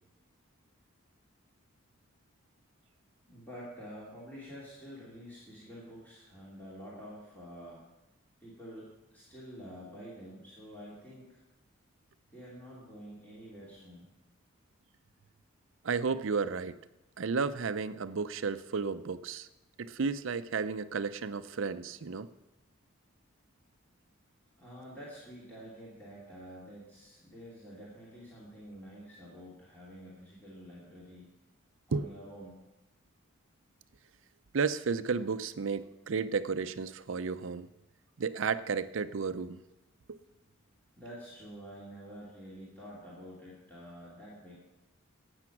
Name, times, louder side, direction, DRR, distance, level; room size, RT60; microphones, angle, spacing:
voice 1, 3.2-7.8 8.4-11.4 12.3-14.1 24.6-31.3 31.9-32.5 41.0-44.5, equal, 10° left, -8 dB, 2.7 m, -48 dB
voice 2, 15.8-16.8 17.2-19.5 19.8-22.3 31.9-32.1 34.5-37.7 38.2-39.6 40.1-40.2, right 5 dB, 65° right, 13 dB, 0.5 m, -33 dB
12.0 x 8.8 x 5.9 m, 0.96 s
head